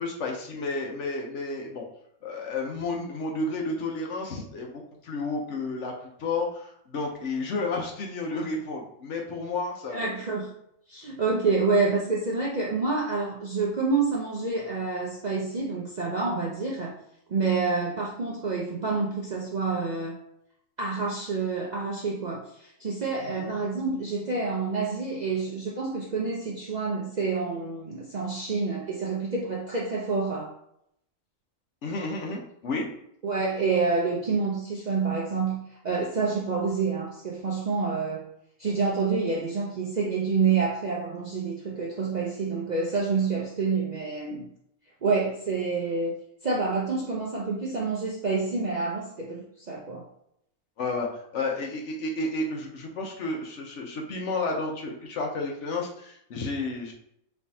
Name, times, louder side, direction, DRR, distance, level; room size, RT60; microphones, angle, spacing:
voice 1, 0.0-1.8 2.2-5.9 6.2-10.1 23.2-23.6 31.8-32.8 50.8-51.1 51.3-56.9, left 3 dB, 60° left, 1 dB, 1.0 m, -31 dB
voice 2, 9.9-10.5 10.9-17.0 17.3-20.2 20.8-30.5 33.2-38.2 38.6-44.5 45.0-46.1 46.4-50.1, right 4 dB, 50° right, -3 dB, 0.5 m, -28 dB
4.1 x 3.4 x 2.7 m, 0.74 s
omnidirectional pair, 1.4 m